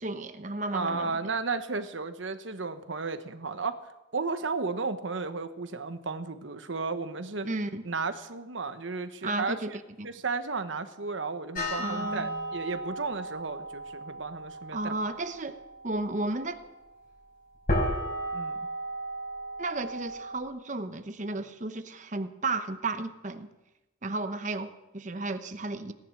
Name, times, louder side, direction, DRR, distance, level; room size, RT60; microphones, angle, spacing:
voice 1, 0.0-1.1 7.4-7.8 9.2-9.7 10.0-10.1 11.8-12.3 14.7-15.6 15.8-16.6 19.6-23.5 24.0-25.9, right 2 dB, 40° right, 9 dB, 0.9 m, -33 dB
voice 2, 0.7-3.8 4.1-7.5 7.8-9.8 10.0-15.0 18.3-18.6, right 4 dB, 85° right, 10 dB, 1.1 m, -33 dB
sound 1, 11.5-20.4, equal, 45° left, 5.5 m, -35 dB
18.0 x 11.0 x 6.4 m, 1.0 s
head